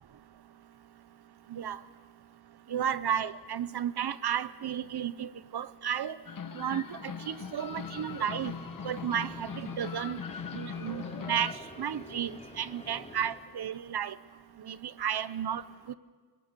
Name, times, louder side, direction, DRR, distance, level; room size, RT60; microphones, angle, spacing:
voice 1, 2.7-6.2 6.5-8.5 8.8-10.2 10.5-14.2 14.6-15.6 15.9-16.0, right 9 dB, 65° right, 15 dB, 0.9 m, -33 dB
sound 1, 6.3-11.5, left 6 dB, 50° left, 1.1 m, -40 dB
sound 2, 6.9-13.4, left 1 dB, 15° left, 3.5 m, -48 dB
29.0 x 19.5 x 6.9 m, 1.5 s
wide cardioid pair, 125°, 42 cm